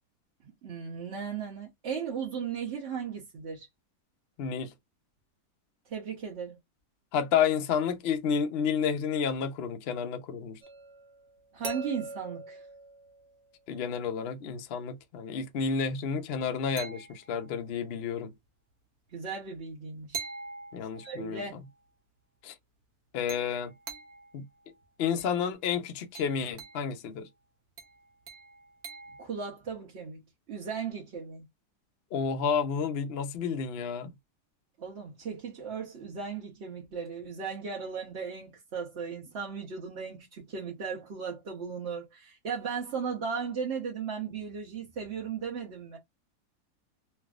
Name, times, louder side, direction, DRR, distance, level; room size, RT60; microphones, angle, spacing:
voice 1, 0.6-3.7 5.9-6.6 11.5-12.6 19.1-20.2 21.0-21.6 29.2-30.2 30.5-31.4 34.8-46.0, right 6 dB, 50° right, 0.9 m, -36 dB
voice 2, 4.4-4.7 7.1-10.6 13.7-18.3 20.7-21.4 22.4-22.5 23.1-23.7 24.3-24.4 25.0-27.3 32.1-34.1, left 6 dB, 65° left, 0.6 m, -30 dB
sound 1, 10.6-13.7 16.8-17.6 20.1-21.3 23.3-24.3 25.2-25.4 26.2-26.9 27.8-29.3, right 4 dB, 65° right, 1.3 m, -43 dB
3.3 x 2.5 x 2.3 m
omnidirectional pair, 1.7 m